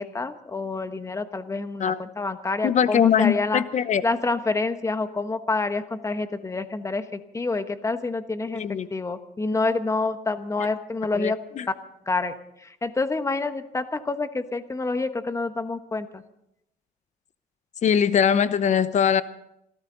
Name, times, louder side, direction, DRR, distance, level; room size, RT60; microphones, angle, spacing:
voice 1, 0.0-3.6 4.0-11.4 12.1-12.3 12.6-16.2, left 3 dB, 15° left, 10 dB, 1.2 m, -27 dB
voice 2, 2.6-4.0 8.5-8.9 11.1-11.7 17.8-19.2, left 8 dB, 45° left, 15 dB, 0.8 m, -22 dB
26.5 x 13.0 x 4.0 m, 0.81 s
cardioid pair, 110°, 17 cm